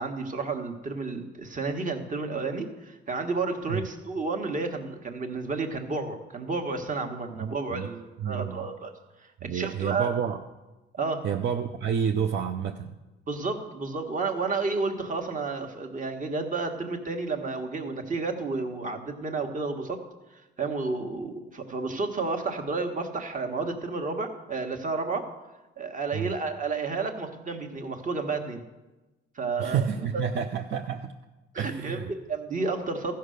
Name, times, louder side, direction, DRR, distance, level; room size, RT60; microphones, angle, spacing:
voice 1, 0.0-8.9 9.4-10.1 10.9-11.2 13.3-20.0 20.6-25.3 25.8-28.6 29.3-29.8 31.5-33.2, right 3 dB, 40° right, 5 dB, 1.5 m, -31 dB
voice 2, 7.4-7.9 8.2-8.7 9.4-10.4 11.2-13.0 26.1-26.3 29.6-31.1 31.6-32.1, right 8 dB, 65° right, 5 dB, 0.6 m, -29 dB
14.0 x 5.7 x 6.5 m, 1.1 s
cardioid pair, 90°, 20 cm